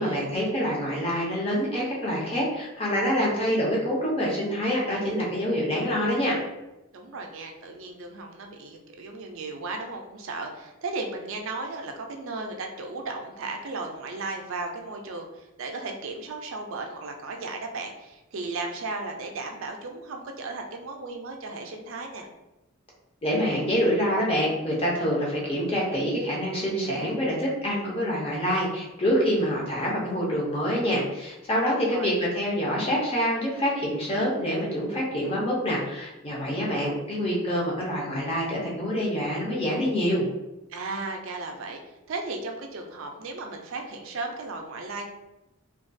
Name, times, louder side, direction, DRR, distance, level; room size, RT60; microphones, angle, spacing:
voice 1, 0.0-6.4 23.2-40.3, equal, 25° left, -4 dB, 0.6 m, -26 dB
voice 2, 6.9-22.3 31.7-32.2 40.7-45.1, right 3 dB, 65° right, 3 dB, 0.4 m, -35 dB
2.4 x 2.2 x 2.5 m, 0.98 s
head